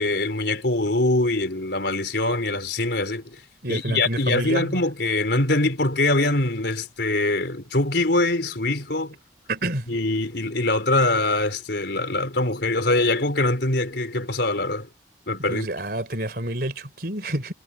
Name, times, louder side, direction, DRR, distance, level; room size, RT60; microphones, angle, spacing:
voice 1, 0.0-3.4 3.7-9.1 9.9-14.9 15.3-15.7, left 2 dB, 65° left, 4.0 m, -23 dB
voice 2, 3.6-4.8 9.5-9.9 15.4-17.5, right 1 dB, 55° right, 3.7 m, -28 dB
head